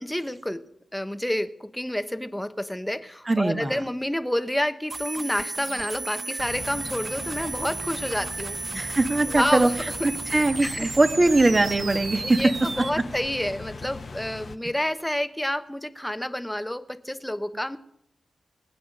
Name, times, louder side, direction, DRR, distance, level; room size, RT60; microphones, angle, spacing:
voice 1, 0.0-8.6 9.2-9.9 10.3-10.9 12.2-17.8, left 1 dB, 5° left, 10 dB, 1.0 m, -29 dB
voice 2, 3.3-3.7 8.7-9.7 10.3-12.4, right 2 dB, 35° right, 7 dB, 1.4 m, -21 dB
sound 1, 4.9-12.9, right 3 dB, 50° right, 0.9 m, -34 dB
sound 2, 6.4-14.6, left 4 dB, 55° left, 1.2 m, -40 dB
21.0 x 8.7 x 6.6 m, 0.80 s
cardioid pair, 70°, 0 cm